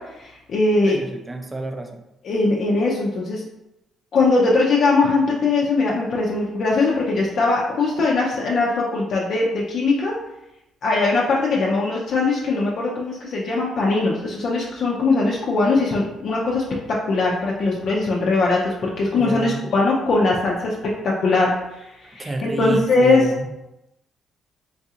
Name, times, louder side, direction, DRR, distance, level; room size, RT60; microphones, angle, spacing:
voice 1, 0.2-1.0 2.2-3.4 4.1-10.1 10.8-23.3, left 3 dB, 60° left, -3 dB, 0.5 m, -20 dB
voice 2, 0.9-2.0 19.2-19.6 22.2-23.5, right 2 dB, 20° right, 5 dB, 0.5 m, -29 dB
3.9 x 2.4 x 2.8 m, 0.93 s
cardioid pair, 90°, 0 cm